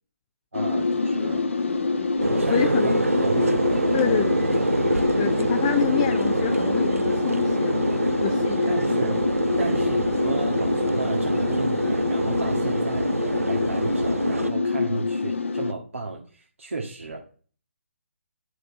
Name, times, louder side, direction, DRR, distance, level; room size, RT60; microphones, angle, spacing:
sound 1, 0.5-15.7, left 4 dB, 65° left, 0.7 m, -26 dB
voice 1, 0.5-1.5 2.2-4.1 4.5-5.6 8.7-9.2 9.6-17.2, right 3 dB, 70° right, -1 dB, 1.6 m, -33 dB
sound 2, 0.7-5.9, right 3 dB, 35° right, 1.8 m, -49 dB
sound 3, 2.2-14.5, right 2 dB, 85° right, 0.5 m, -26 dB
voice 2, 2.5-3.0 3.9-4.4 5.2-7.8 8.2-9.2, left 11 dB, 25° left, 7 dB, 0.4 m, -28 dB
10.5 x 5.1 x 4.7 m, 0.42 s
figure-of-eight pair, 140°, 7 cm